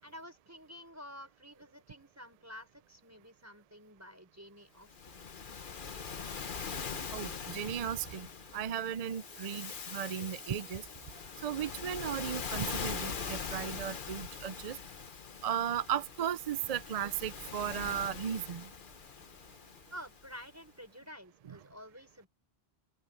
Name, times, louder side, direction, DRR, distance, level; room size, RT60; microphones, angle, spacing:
voice 1, 0.0-5.2 19.9-22.3, equal, 15° right, 5.0 m, -50 dB
Waves surf, 4.9-20.4, left 6 dB, 55° left, 1.2 m, -42 dB
voice 2, 7.1-8.3 8.5-10.8 11.4-14.8 15.4-18.7 21.5-21.6, right 9 dB, 50° right, 0.5 m, -36 dB
sound 1, 9.1-14.3, right 2 dB, 80° right, 5.8 m, -62 dB
open air
omnidirectional pair, 1.1 m